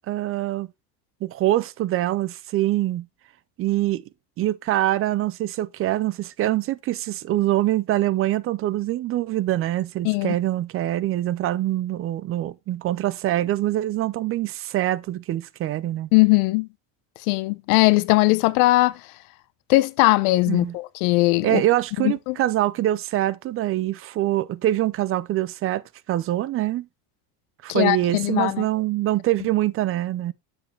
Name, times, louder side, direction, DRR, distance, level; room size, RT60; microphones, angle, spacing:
voice 1, 0.1-0.7 1.2-3.1 3.6-4.0 4.4-16.1 20.5-20.7 21.4-25.8 26.1-26.9 27.6-30.3, right 14 dB, 35° right, 0.4 m, -24 dB
voice 2, 10.0-10.4 16.1-16.7 17.3-19.0 19.7-21.6 22.0-22.4 27.7-28.6, left 21 dB, 90° left, 0.8 m, -19 dB
7.2 x 7.0 x 3.2 m
cardioid pair, 140°, 42 cm